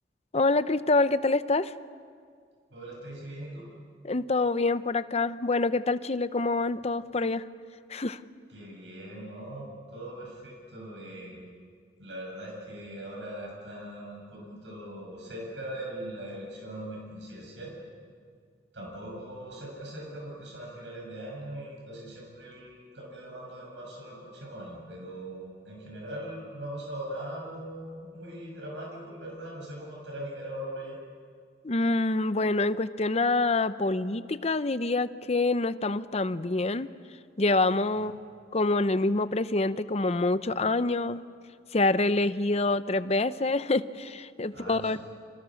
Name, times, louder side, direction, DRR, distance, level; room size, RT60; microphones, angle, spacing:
voice 1, 0.3-1.7 4.0-7.4 7.9-8.2 31.6-36.9 37.4-38.1 38.5-41.2 41.7-45.0, left 2 dB, 35° left, 13 dB, 0.7 m, -26 dB
voice 2, 2.7-3.7 8.5-11.4 12.0-17.8 18.7-31.0 38.0-38.1 44.5-45.0, right 1 dB, 80° right, -2 dB, 7.5 m, -40 dB
29.5 x 26.5 x 6.5 m, 2.1 s
head